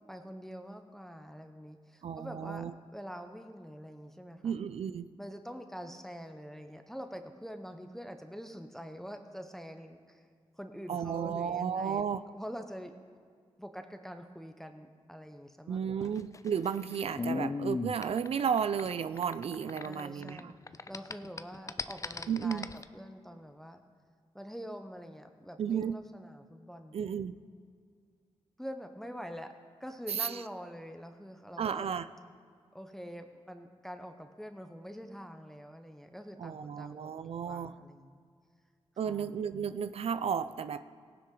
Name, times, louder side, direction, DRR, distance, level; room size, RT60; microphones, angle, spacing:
voice 1, 0.1-2.7 2.9-4.5 5.2-10.3 10.6-12.1 12.3-12.9 13.6-16.1 19.8-20.6 20.9-22.7 22.9-23.8 24.3-26.9 28.6-29.5 29.8-31.9 32.7-37.1 37.4-38.2 39.1-39.3, equal, 5° left, 6 dB, 0.8 m, -45 dB
voice 2, 2.0-2.7 4.4-5.1 10.9-12.2 15.7-20.5 22.3-22.7 25.6-26.0 26.9-27.4 30.1-30.4 31.6-32.1 36.4-37.7 39.0-40.8, right 7 dB, 65° right, 13 dB, 0.4 m, -33 dB
sound 1, 16.1-20.4 20.7-22.8, left 4 dB, 30° left, 0.4 m, -38 dB
17.5 x 10.0 x 3.9 m, 2.1 s
cardioid pair, 70°, 11 cm